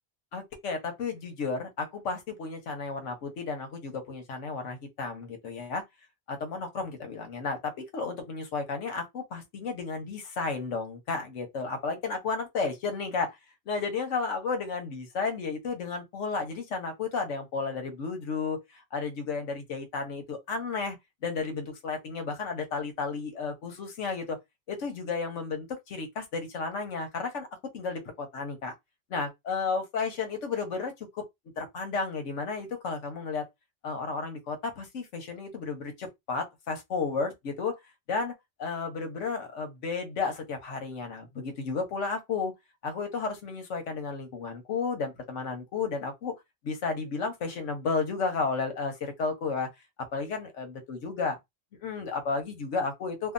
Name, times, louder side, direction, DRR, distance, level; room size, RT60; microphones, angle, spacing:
voice 1, 0.3-5.8 6.3-13.4 13.7-21.0 21.2-24.4 24.7-27.5 27.7-28.7 29.1-31.2 31.6-33.4 33.8-37.7 38.1-38.3 38.6-42.5 42.8-46.3 46.6-49.7 50.1-51.3 51.8-53.3, left 4 dB, 80° left, 1.2 m, -33 dB
2.7 x 2.3 x 2.5 m
omnidirectional pair, 1.2 m